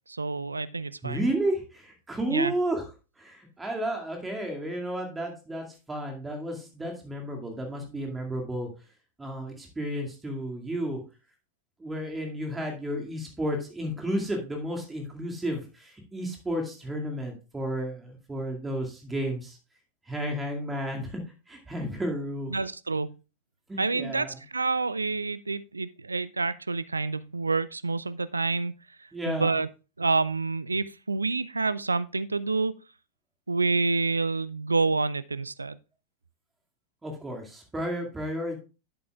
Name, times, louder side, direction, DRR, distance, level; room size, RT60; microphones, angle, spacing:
voice 1, 0.1-1.3 2.3-2.5 22.5-23.1 23.8-28.7 29.3-29.7 30.0-32.7 33.5-35.8, right 3 dB, 80° right, 0.4 m, -28 dB
voice 2, 1.0-2.9 3.2-8.7 9.2-11.0 11.8-19.6 20.1-21.2 21.5-22.5 23.7-24.3 29.1-29.5 37.0-38.6, right 1 dB, 10° right, 2.1 m, -32 dB
10.5 x 7.8 x 2.3 m
figure-of-eight pair, 90°, 0 cm